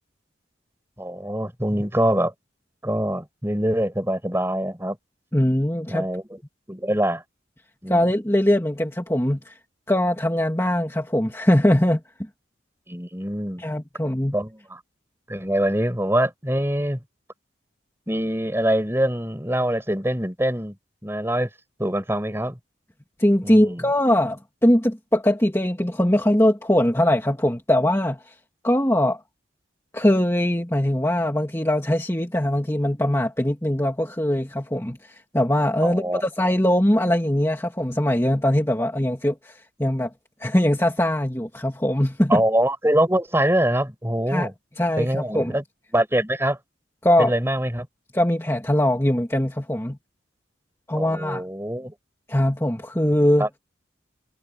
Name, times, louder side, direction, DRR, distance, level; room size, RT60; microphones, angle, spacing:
voice 1, 1.0-2.3 2.8-5.0 5.9-6.4 6.7-7.2 7.8-8.1 12.9-13.6 14.3-14.8 15.3-17.0 18.1-20.8 21.0-21.5 21.8-22.6 23.4-23.9 35.8-36.2 42.3-44.5 45.0-45.6 45.9-46.6 47.2-47.9 50.9-51.9 53.4-53.5, right 1 dB, 10° right, 5.4 m, -24 dB
voice 2, 5.3-6.1 7.9-9.5 9.9-12.0 13.6-14.3 23.2-28.3 28.6-29.2 29.9-40.1 40.4-42.4 44.3-44.5 44.8-45.6 47.0-47.3 48.1-50.0 50.9-51.4 52.3-53.5, left 1 dB, 15° left, 2.2 m, -21 dB
head